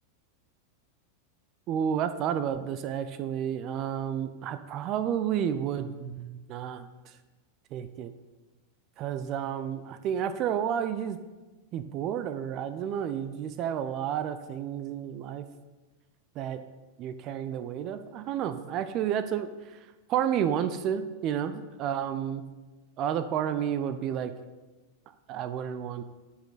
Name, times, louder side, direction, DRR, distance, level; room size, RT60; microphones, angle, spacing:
voice 1, 1.7-7.2 7.7-8.1 9.0-11.2 11.7-15.5 16.4-16.6 17.0-22.4 23.0-24.3 25.3-26.0, right 9 dB, 40° right, 11 dB, 0.6 m, -31 dB
11.0 x 6.9 x 4.0 m, 1.2 s
figure-of-eight pair, 90°, 0 cm